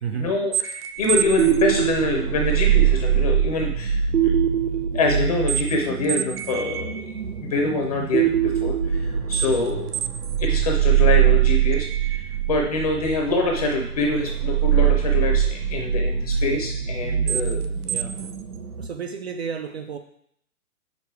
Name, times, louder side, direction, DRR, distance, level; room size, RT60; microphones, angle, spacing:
voice 1, 0.1-4.3 4.9-8.7 9.3-10.0 10.4-17.6, left 2 dB, 25° left, 1 dB, 0.6 m, -25 dB
sound 1, 0.5-18.9, right 9 dB, 85° right, 0.8 m, -23 dB
voice 2, 17.8-18.4 18.8-20.0, right 7 dB, 45° right, 7 dB, 0.5 m, -32 dB
5.2 x 5.0 x 4.6 m, 0.69 s
hypercardioid pair, 150°, 45 cm